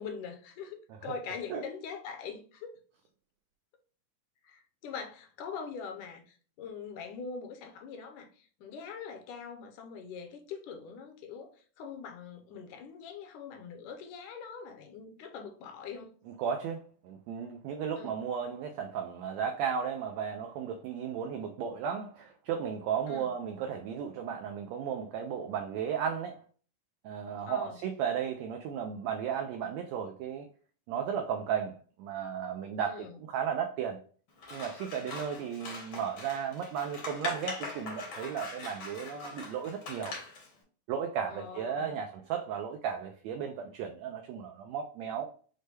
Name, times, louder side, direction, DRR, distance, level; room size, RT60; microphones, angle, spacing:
voice 1, 0.0-2.7 4.4-11.5 11.8-16.1 18.0-18.2 23.1-23.3 27.5-27.8 32.9-33.2 41.3-41.9, left 6 dB, 80° left, 2.1 m, -43 dB
voice 2, 16.3-26.4 27.0-30.5 30.9-34.0 34.5-40.1 40.9-45.3, right 7 dB, 85° right, 1.5 m, -35 dB
Scissors, 34.4-40.5, left 3 dB, 60° left, 1.1 m, -42 dB
6.3 x 2.2 x 3.2 m
omnidirectional pair, 3.6 m